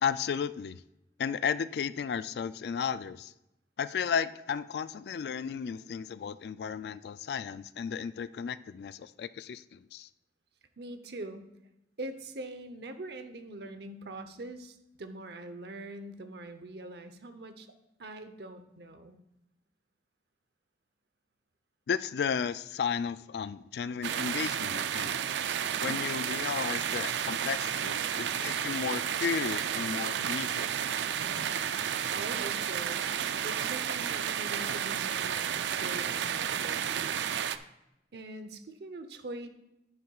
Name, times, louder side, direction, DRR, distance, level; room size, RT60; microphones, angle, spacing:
voice 1, 0.0-0.8 1.2-3.3 3.8-10.1 21.9-25.2 25.8-30.7, left 7 dB, 65° left, 15 dB, 0.3 m, -34 dB
voice 2, 10.8-11.5 12.0-17.7 18.0-19.2 31.2-31.6 32.1-37.3 38.1-39.5, right 2 dB, 70° right, 9 dB, 0.8 m, -43 dB
sound 1, 24.0-37.6, right 8 dB, 85° right, 0.4 m, -32 dB
10.5 x 9.4 x 2.4 m, 0.87 s
head